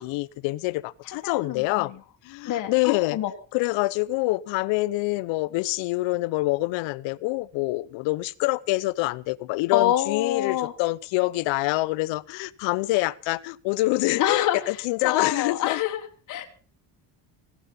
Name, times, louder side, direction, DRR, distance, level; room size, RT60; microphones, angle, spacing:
voice 1, 0.0-1.9 2.2-3.2 3.5-15.8, left 20 dB, 75° left, 20 dB, 0.8 m, -26 dB
voice 2, 1.2-1.9 2.4-3.3 9.7-10.7 14.2-14.8 15.0-16.5, left 12 dB, 40° left, 4 dB, 1.6 m, -26 dB
16.5 x 12.5 x 5.5 m, 0.40 s
cardioid pair, 170°, 45 cm